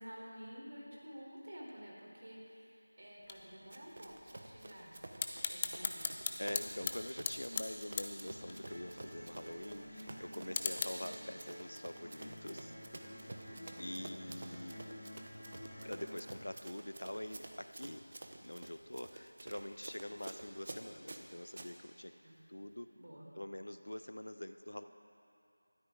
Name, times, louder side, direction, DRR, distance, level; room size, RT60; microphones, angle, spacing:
voice 1, 0.0-6.3 13.4-13.9 22.2-22.4 22.9-23.3, equal, 50° right, -3 dB, 3.5 m, -52 dB
sound 1, 3.2-10.8, left 5 dB, 10° left, 0.4 m, -42 dB
Run, 3.7-21.7, right 2 dB, 30° right, 0.8 m, -51 dB
voice 2, 6.4-12.7 13.3-13.5 13.8-14.8 15.8-18.0 18.4-22.1 22.5-22.9 23.3-24.8, left 1 dB, 75° left, 10 dB, 0.8 m, -45 dB
sound 2, 8.2-16.2, equal, 10° right, 2.2 m, -51 dB
20.0 x 12.5 x 3.8 m, 2.6 s
figure-of-eight pair, 175°, 0 cm